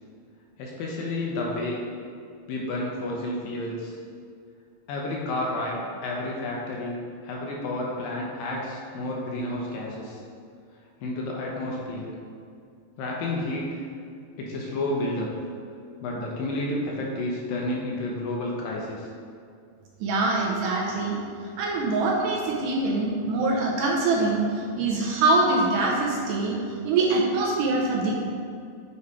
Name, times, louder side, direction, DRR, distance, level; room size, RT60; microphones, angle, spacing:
voice 1, 0.6-1.8 2.5-4.0 4.9-10.2 11.0-12.1 13.0-13.8 14.4-15.3 16.0-19.1, left 1 dB, 80° left, -3 dB, 2.4 m, -30 dB
voice 2, 20.0-21.2 21.6-26.6 26.8-28.2, right 2 dB, 80° right, -2 dB, 2.1 m, -24 dB
8.3 x 3.2 x 4.6 m, 2.3 s
omnidirectional pair, 4.1 m